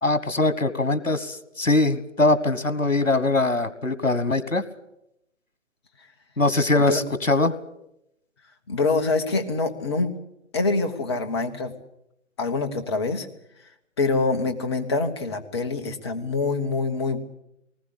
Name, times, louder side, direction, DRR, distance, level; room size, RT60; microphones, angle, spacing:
voice 1, 0.0-4.6 6.4-7.5, left 2 dB, 90° left, 14 dB, 1.4 m, -22 dB
voice 2, 8.7-10.1 10.5-11.7 12.4-13.3 14.0-17.2, left 3 dB, 20° left, 6 dB, 1.2 m, -25 dB
19.5 x 19.5 x 8.3 m, 0.81 s
figure-of-eight pair, 145°, 38 cm